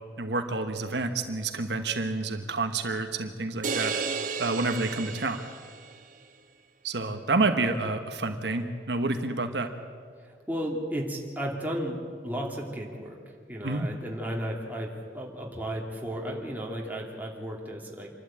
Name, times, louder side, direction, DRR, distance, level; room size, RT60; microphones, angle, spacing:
voice 1, 0.2-3.9 4.4-5.4 6.8-9.7 13.6-13.9, right 3 dB, 70° right, 6 dB, 1.2 m, -29 dB
sound 1, 3.6-6.0, right 5 dB, 50° right, 1.3 m, -33 dB
voice 2, 10.3-13.2 13.5-18.1, equal, 10° right, -1 dB, 2.7 m, -34 dB
26.5 x 12.0 x 8.8 m, 2.1 s
head